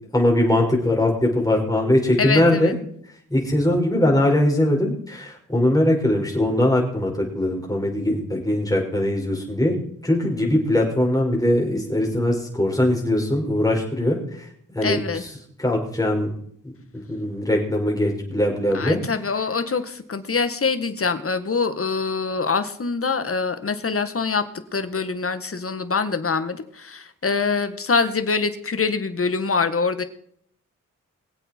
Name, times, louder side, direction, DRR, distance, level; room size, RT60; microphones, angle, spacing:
voice 1, 0.1-2.7 3.3-9.8 10.0-15.3 15.6-16.3 16.6-19.0, left 1 dB, 10° left, -1 dB, 5.7 m, -21 dB
voice 2, 2.2-2.7 14.8-15.2 18.7-24.4 24.7-30.0, left 4 dB, 45° left, 10 dB, 1.7 m, -24 dB
22.5 x 8.2 x 4.6 m, 0.65 s
cardioid pair, 65°, 32 cm